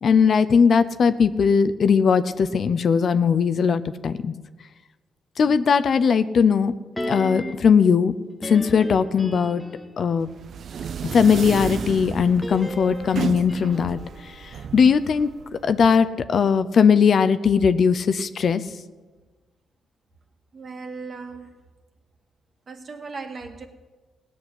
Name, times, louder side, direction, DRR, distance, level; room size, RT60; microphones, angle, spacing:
voice 1, 0.0-4.3 5.4-6.7 7.0-8.1 8.4-9.6 10.0-10.3 11.0-15.3 15.6-18.6, left 6 dB, 60° left, 12 dB, 0.7 m, -19 dB
sound 1, 7.0-7.8 8.4-10.0 11.1-15.3 15.6-15.7, left 1 dB, 15° left, 1.4 m, -35 dB
sound 2, 10.2-16.0, right 7 dB, 65° right, 0.4 m, -34 dB
voice 2, 20.5-21.5 22.7-23.7, right 4 dB, 50° right, 5 dB, 1.8 m, -37 dB
17.0 x 6.4 x 9.7 m, 1.3 s
cardioid pair, 75°, 0 cm